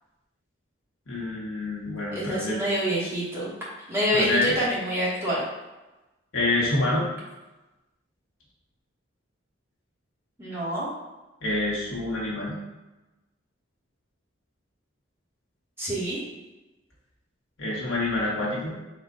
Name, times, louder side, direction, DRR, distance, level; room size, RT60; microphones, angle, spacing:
voice 1, 1.1-2.6 4.1-4.6 6.3-7.0 11.4-12.6 17.6-18.7, left 2 dB, 80° left, -5 dB, 1.3 m, -27 dB
voice 2, 2.1-3.5 3.9-5.4 10.4-10.9 15.8-16.2, equal, 10° right, -8 dB, 1.2 m, -26 dB
4.3 x 2.4 x 3.8 m, 1.1 s
head